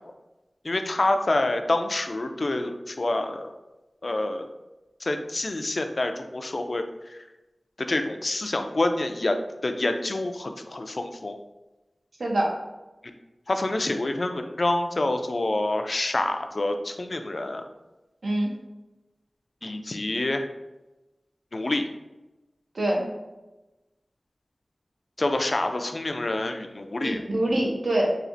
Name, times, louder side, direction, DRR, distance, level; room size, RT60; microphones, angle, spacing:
voice 1, 0.6-3.5 4.0-4.5 5.0-7.2 7.8-11.4 13.5-17.7 19.6-20.5 21.5-21.9 25.2-27.2, left 2 dB, 55° left, 6 dB, 0.3 m, -27 dB
voice 2, 12.2-12.5 18.2-18.5 22.7-23.1 27.0-28.2, right 1 dB, 80° right, -1 dB, 0.7 m, -24 dB
4.2 x 2.4 x 2.5 m, 1.1 s
wide cardioid pair, 50°, 0 cm